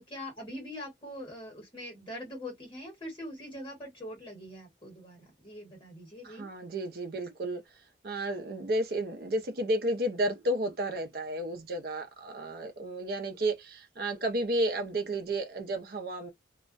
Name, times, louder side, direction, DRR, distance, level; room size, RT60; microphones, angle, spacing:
voice 1, 0.0-6.4, left 1 dB, 30° left, 1.2 m, -43 dB
voice 2, 6.2-7.6 8.0-16.3, right 1 dB, 55° right, 0.5 m, -32 dB
2.3 x 2.1 x 2.5 m
head